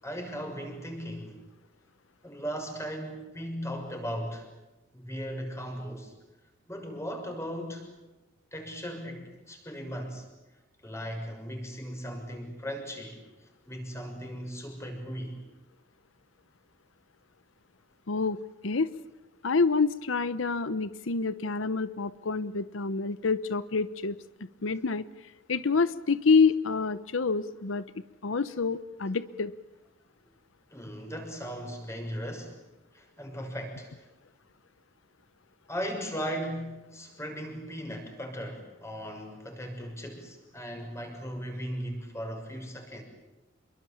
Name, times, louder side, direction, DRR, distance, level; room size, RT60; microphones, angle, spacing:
voice 1, 0.0-1.4 2.2-4.5 4.9-6.1 6.7-7.9 8.5-10.3 10.8-13.2 13.7-15.4 30.7-32.6 32.9-33.9 35.7-43.0, equal, 15° left, 3 dB, 6.6 m, -37 dB
voice 2, 18.1-18.9 19.4-24.2 24.6-29.5, left 4 dB, 80° left, 15 dB, 0.8 m, -27 dB
27.5 x 23.5 x 8.7 m, 1.0 s
head